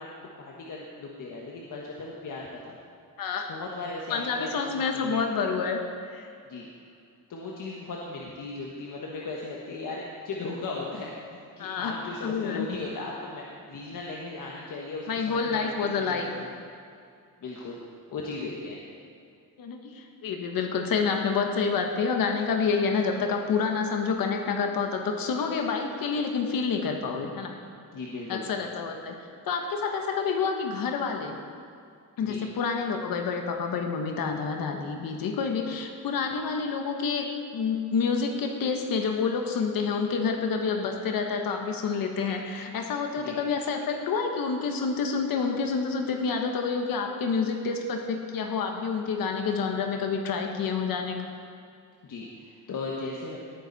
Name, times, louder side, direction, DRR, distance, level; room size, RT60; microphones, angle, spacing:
voice 1, 0.0-2.8 3.5-5.2 6.5-6.7 7.3-16.5 17.4-17.8 18.1-18.8 27.9-28.4 32.2-32.4 43.2-43.4 52.0-53.4, left 3 dB, 65° left, -3 dB, 1.5 m, -37 dB
voice 2, 3.2-3.5 4.1-5.8 6.1-6.3 11.6-11.9 12.2-12.7 15.1-16.3 19.6-27.5 28.3-29.1 29.4-31.3 32.2-51.2, left 5 dB, 90° left, 3 dB, 1.3 m, -28 dB
18.5 x 9.7 x 4.1 m, 2.4 s
wide cardioid pair, 150°, 33 cm